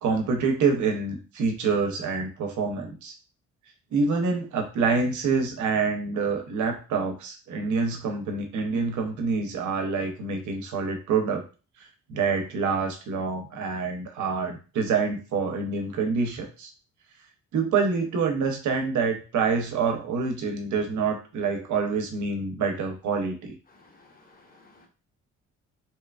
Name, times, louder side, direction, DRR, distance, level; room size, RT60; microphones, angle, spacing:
voice 1, 0.0-3.1 3.9-11.4 12.1-16.7 17.5-23.6, right 4 dB, 75° right, 4 dB, 0.7 m, -26 dB
voice 2, 23.7-24.9, left 3 dB, 30° left, 2 dB, 0.8 m, -56 dB
2.8 x 2.3 x 2.3 m, 0.34 s
cardioid pair, 90°, 30 cm